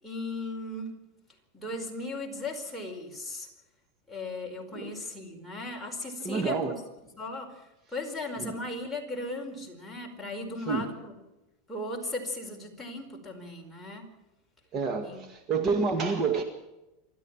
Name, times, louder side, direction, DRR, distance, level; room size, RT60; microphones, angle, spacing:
voice 1, 0.0-1.0 1.5-3.5 4.1-6.7 7.2-11.1 11.7-14.1 15.0-15.2, left 2 dB, ahead, -2 dB, 4.8 m, -37 dB
voice 2, 6.2-6.7 10.7-10.9 14.7-16.4, right 4 dB, 35° right, 6 dB, 2.0 m, -28 dB
27.5 x 12.5 x 7.4 m, 0.97 s
supercardioid pair, 140°, 0 cm